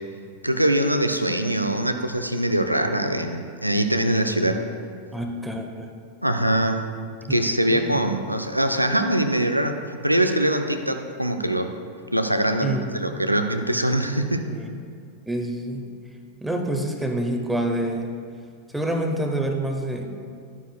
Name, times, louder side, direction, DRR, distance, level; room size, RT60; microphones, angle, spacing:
voice 1, 0.4-4.6 6.2-6.8 7.3-9.8 10.0-11.7 12.1-14.4, right 1 dB, 90° right, 6 dB, 0.5 m, -23 dB
voice 2, 5.1-5.9 7.2-8.0 12.6-12.9 14.5-14.8 15.3-15.9 16.4-18.1 18.7-20.1, right 1 dB, 5° right, 3 dB, 0.9 m, -27 dB
11.5 x 9.1 x 2.3 m, 2.2 s
figure-of-eight pair, 90°, 0 cm